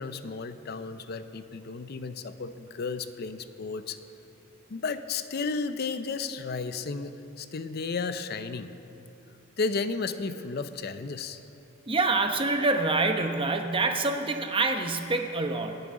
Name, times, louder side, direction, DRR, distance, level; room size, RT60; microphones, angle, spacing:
voice 1, 0.0-4.0 4.7-8.7 9.6-11.4, left 4 dB, 55° left, 11 dB, 0.5 m, -33 dB
voice 2, 11.9-15.8, right 3 dB, 25° right, 5 dB, 0.9 m, -26 dB
25.5 x 10.0 x 3.7 m, 3.0 s
head